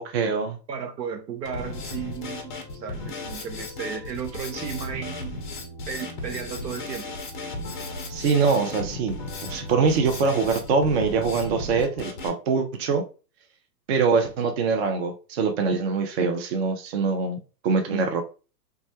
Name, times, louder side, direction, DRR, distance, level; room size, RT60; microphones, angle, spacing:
voice 1, 0.0-0.6 8.1-9.2 9.5-13.0 13.9-17.4 17.6-18.2, right 5 dB, 40° right, 0.4 m, -23 dB
voice 2, 0.7-5.4 5.9-7.1, right 7 dB, 80° right, 0.7 m, -34 dB
Drum kit, 1.5-12.3, left 2 dB, 35° left, 0.4 m, -35 dB
2.3 x 2.0 x 2.7 m
hypercardioid pair, 115°, 49 cm